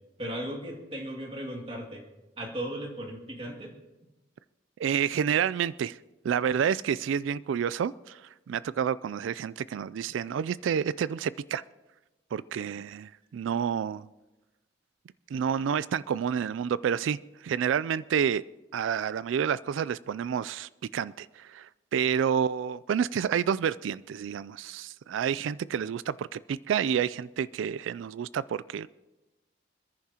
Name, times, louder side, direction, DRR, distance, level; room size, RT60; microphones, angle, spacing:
voice 1, 0.2-2.0 2.4-3.8, right 1 dB, 30° right, 0 dB, 2.2 m, -36 dB
voice 2, 4.8-6.0 6.2-11.6 12.3-14.1 15.3-18.4 18.7-28.9, right 8 dB, 80° right, 19 dB, 0.3 m, -29 dB
27.0 x 10.5 x 2.9 m, 1.1 s
head